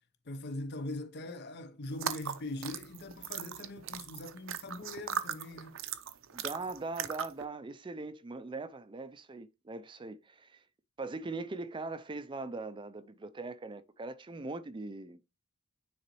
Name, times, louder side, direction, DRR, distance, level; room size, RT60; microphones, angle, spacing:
voice 1, 0.3-5.8, left 2 dB, 50° left, 0.8 m, -41 dB
sound 1, 1.9-7.4, right 8 dB, 65° right, 0.6 m, -39 dB
voice 2, 6.3-10.6 11.0-15.2, right 3 dB, 25° right, 0.4 m, -41 dB
9.6 x 3.9 x 3.0 m
head